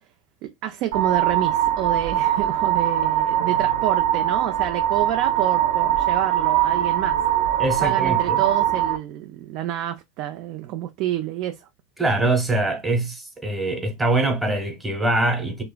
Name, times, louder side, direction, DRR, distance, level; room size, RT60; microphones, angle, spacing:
voice 1, 0.4-7.2 7.8-11.7, right 12 dB, 55° right, 0.3 m, -28 dB
sound 1, 0.9-9.0, right 12 dB, 75° right, 0.7 m, -21 dB
voice 2, 7.6-8.4 12.0-15.6, right 2 dB, 10° right, 0.9 m, -23 dB
2.9 x 2.4 x 2.2 m
supercardioid pair, 115°, 0 cm